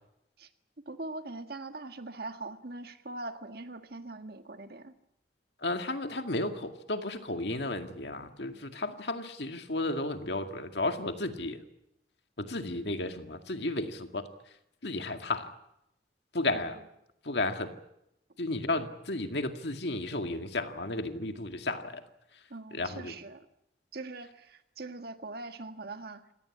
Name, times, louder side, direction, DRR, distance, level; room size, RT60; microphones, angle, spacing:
voice 1, 0.8-4.9 16.5-16.8 22.5-23.4 23.9-26.3, right 2 dB, 60° right, 8 dB, 1.7 m, -42 dB
voice 2, 5.6-11.6 12.4-14.3 14.8-15.5 16.3-16.8 17.2-17.8 18.4-22.0 22.7-23.1, left 2 dB, 70° left, 6 dB, 2.1 m, -33 dB
27.0 x 18.0 x 8.6 m, 0.83 s
head